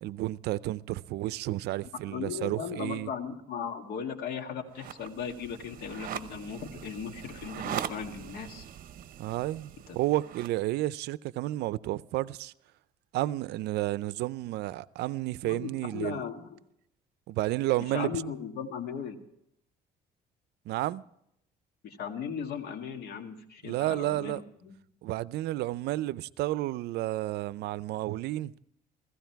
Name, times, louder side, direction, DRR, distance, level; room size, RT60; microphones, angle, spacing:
voice 1, 0.0-3.1 9.2-12.5 13.1-16.2 17.3-18.1 20.7-21.0 23.6-24.4 25.0-28.5, right 16 dB, 75° right, 0.5 m, -31 dB
voice 2, 2.1-8.6 9.9-10.0 15.4-16.6 17.8-19.2 21.8-24.8, left 7 dB, 70° left, 1.9 m, -37 dB
sound 1, 4.7-10.6, right 10 dB, 55° right, 0.9 m, -41 dB
16.0 x 16.0 x 4.6 m
cardioid pair, 110°, 17 cm